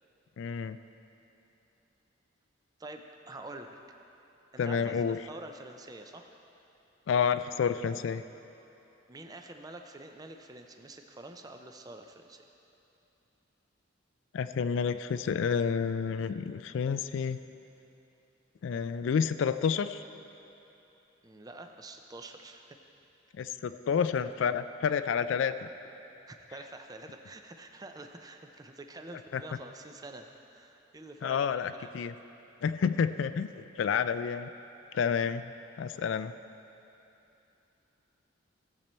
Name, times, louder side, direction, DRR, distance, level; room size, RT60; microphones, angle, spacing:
voice 1, 0.4-0.8 4.6-5.2 7.1-8.2 14.3-17.4 18.6-20.0 23.4-25.7 29.3-29.4 31.2-32.1 32.6-34.5 34.9-35.5 35.8-36.3, left 6 dB, 70° left, 11 dB, 0.3 m, -29 dB
voice 2, 2.8-3.8 4.5-6.3 9.1-12.5 21.2-22.8 26.3-31.9, right 2 dB, 20° right, 5 dB, 0.4 m, -47 dB
15.0 x 7.4 x 4.3 m, 2.9 s
head